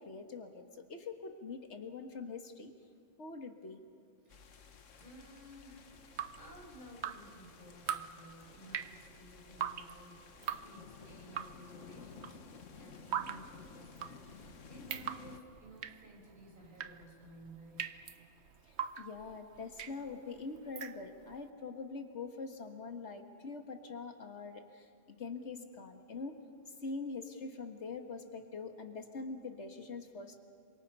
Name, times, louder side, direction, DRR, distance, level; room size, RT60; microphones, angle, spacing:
voice 1, 0.0-2.7 3.2-3.8 19.0-26.4 26.8-30.4, left 4 dB, 65° left, 6 dB, 1.9 m, -44 dB
sound 1, 4.3-15.4, left 5 dB, 80° left, 1.5 m, -55 dB
voice 2, 4.9-5.9 6.4-12.5 12.8-17.9, right 1 dB, 40° right, -2 dB, 5.7 m, -55 dB
Drip, 5.9-21.4, right 9 dB, 65° right, 1.0 m, -43 dB
27.5 x 25.0 x 5.5 m, 2.4 s
omnidirectional pair, 1.3 m